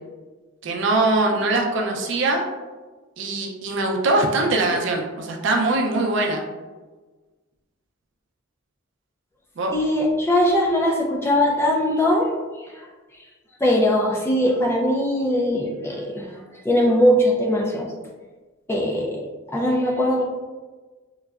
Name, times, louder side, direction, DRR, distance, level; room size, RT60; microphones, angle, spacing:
voice 1, 0.6-2.4 3.2-6.4 9.6-9.7, right 2 dB, 60° right, 1 dB, 0.5 m, -22 dB
voice 2, 9.7-12.3 13.6-16.3 16.6-17.9 18.7-19.2 19.5-20.2, left 1 dB, 10° left, -1 dB, 0.3 m, -20 dB
3.8 x 2.1 x 2.3 m, 1.3 s
head